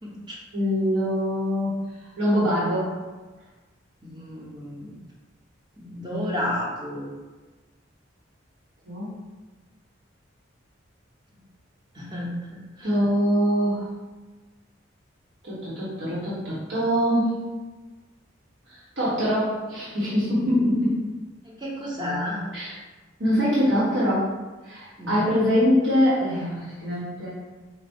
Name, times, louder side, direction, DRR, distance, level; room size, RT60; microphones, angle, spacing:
voice 1, 0.0-0.4 4.0-4.9 5.8-7.1 11.9-12.9 21.6-22.4 25.0-25.2, left 1 dB, 20° right, -4 dB, 0.9 m, -31 dB
voice 2, 0.5-1.7 2.2-2.9 8.8-9.1 12.8-14.0 15.4-17.5 18.7-20.9 22.5-22.8 23.2-24.3 24.6-27.3, equal, 70° right, -10 dB, 1.3 m, -23 dB
5.0 x 2.2 x 4.4 m, 1.3 s
head